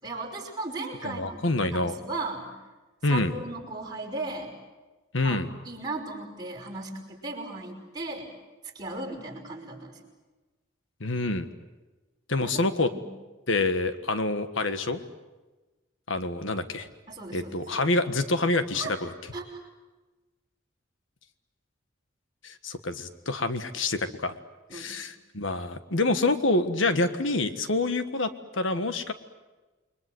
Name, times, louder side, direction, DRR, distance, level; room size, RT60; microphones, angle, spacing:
voice 1, 0.0-1.5 1.7-2.6 3.0-4.5 5.2-5.4 5.6-8.3 8.7-10.0 12.4-12.5 12.9-13.0 17.1-18.0 18.7-19.0 19.3-19.6 24.7-25.0, right 2 dB, 20° right, -1 dB, 5.5 m, -36 dB
voice 2, 1.0-1.9 3.0-3.3 5.1-5.5 11.0-11.5 12.3-12.9 13.5-15.0 16.1-16.9 17.3-19.1 22.4-24.3 24.7-29.1, left 2 dB, 75° left, 10 dB, 1.5 m, -27 dB
29.5 x 23.0 x 7.9 m, 1.2 s
head